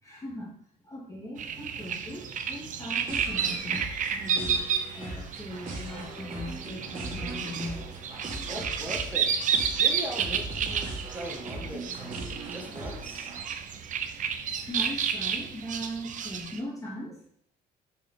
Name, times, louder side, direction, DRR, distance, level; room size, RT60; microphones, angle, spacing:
voice 1, 0.0-0.6 0.8-4.6 4.9-7.8 14.7-17.2, equal, 20° left, -5 dB, 2.6 m, -39 dB
sound 1, 1.4-16.6, right 7 dB, 50° right, 0.7 m, -31 dB
sound 2, 3.1-13.4, right 2 dB, 30° right, 2.3 m, -40 dB
voice 2, 8.5-13.4, equal, 10° right, -1 dB, 1.8 m, -40 dB
5.7 x 5.0 x 4.5 m, 0.67 s
cardioid pair, 110°, 17 cm